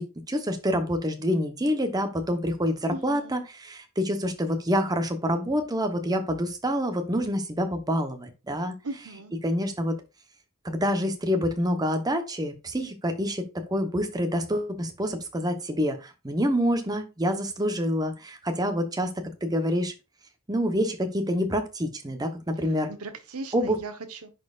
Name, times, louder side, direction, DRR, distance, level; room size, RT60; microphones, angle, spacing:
voice 1, 0.0-8.7 9.4-10.0 10.6-13.4 13.7-19.1 19.4-19.9 20.5-22.9 23.5-23.8, equal, 15° right, 6 dB, 0.9 m, -27 dB
voice 2, 2.9-3.4 8.8-9.3 22.9-24.3, right 3 dB, 80° right, 8 dB, 1.1 m, -38 dB
10.5 x 4.3 x 2.4 m, 0.28 s
head